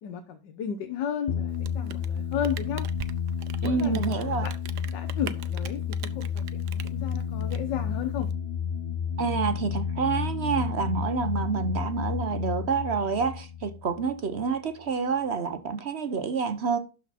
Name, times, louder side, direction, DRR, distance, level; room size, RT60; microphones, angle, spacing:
voice 1, 0.0-2.9 3.6-4.5 4.9-8.3, left 8 dB, 80° left, 1.5 m, -34 dB
sound 1, 1.3-14.5, left 7 dB, 60° left, 0.6 m, -31 dB
Rain, 1.5-8.3, right 9 dB, 75° right, 1.3 m, -43 dB
voice 2, 3.6-4.5 9.2-16.8, right 5 dB, 50° right, 0.9 m, -28 dB
12.0 x 4.8 x 4.2 m
omnidirectional pair, 1.9 m